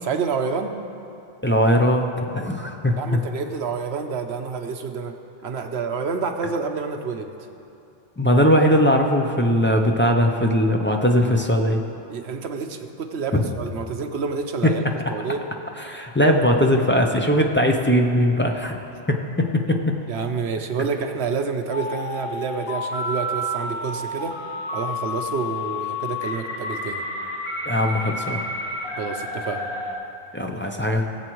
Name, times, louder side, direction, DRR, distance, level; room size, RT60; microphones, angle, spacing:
voice 1, 0.0-0.7 3.0-5.1 5.4-7.3 12.1-14.8 15.1-15.4 20.1-24.3 24.7-27.0 29.0-29.7, right 5 dB, 80° right, 5 dB, 1.0 m, -28 dB
voice 2, 1.4-3.2 8.2-11.8 13.4-13.5 14.6-14.7 15.8-18.8 19.1-19.9 27.7-28.4 30.3-31.1, equal, 15° left, 1 dB, 0.4 m, -20 dB
sound 1, 21.7-29.9, left 1 dB, 65° left, 1.5 m, -30 dB
19.5 x 7.8 x 3.1 m, 2.7 s
omnidirectional pair, 1.1 m